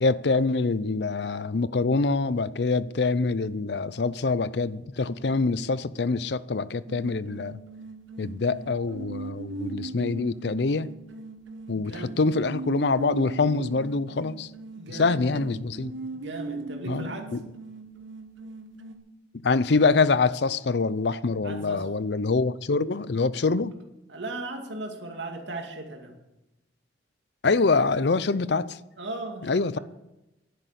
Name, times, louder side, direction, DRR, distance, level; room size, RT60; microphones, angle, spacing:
voice 1, 0.0-7.6 8.2-10.9 11.7-14.5 15.0-15.9 16.9-17.4 19.4-23.7 27.4-28.8 29.4-29.8, left 3 dB, 60° left, 0.5 m, -25 dB
sound 1, 6.9-19.0, right 3 dB, 90° right, 1.3 m, -39 dB
voice 2, 11.8-12.2 14.7-15.5 16.1-17.3 21.4-21.9 24.1-26.2 29.0-29.8, right 2 dB, 70° right, 2.4 m, -37 dB
11.0 x 10.0 x 8.2 m
head